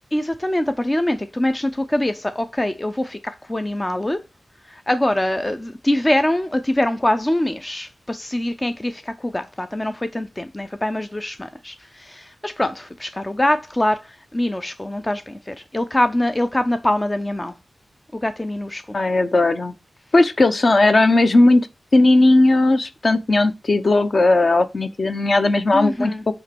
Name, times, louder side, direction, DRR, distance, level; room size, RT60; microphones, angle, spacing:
voice 1, 0.1-4.2 4.6-17.5 18.1-19.0 25.7-26.2, left 1 dB, 15° left, 0.5 m, -23 dB
voice 2, 18.9-19.7 20.1-21.7 21.9-26.1, left 2 dB, 40° left, 0.8 m, -16 dB
8.0 x 3.0 x 6.0 m
wide cardioid pair, 140°, 0 cm